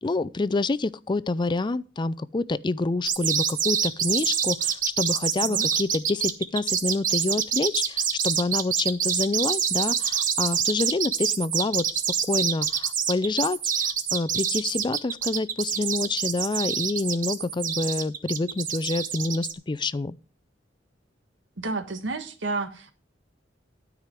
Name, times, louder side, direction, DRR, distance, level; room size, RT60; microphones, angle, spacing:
voice 1, 0.0-12.0 12.3-20.1, left 3 dB, 25° left, 0.4 m, -27 dB
sound 1, 3.1-19.5, right 8 dB, 45° right, 1.1 m, -26 dB
voice 2, 21.6-22.9, right 3 dB, 75° right, 1.4 m, -31 dB
12.5 x 5.0 x 7.5 m
head